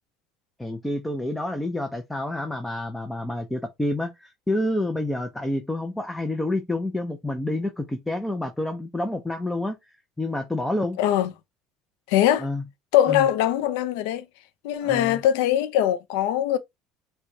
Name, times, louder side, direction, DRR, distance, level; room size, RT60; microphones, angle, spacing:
voice 1, 0.6-9.8 10.2-11.0 12.4-12.6 13.1-13.3 14.8-15.2, left 1 dB, 5° left, 0.5 m, -28 dB
voice 2, 11.0-11.3 12.1-12.5 12.9-14.3 14.6-16.6, left 11 dB, 80° left, 0.4 m, -21 dB
4.5 x 2.2 x 2.6 m
supercardioid pair, 110°, 0 cm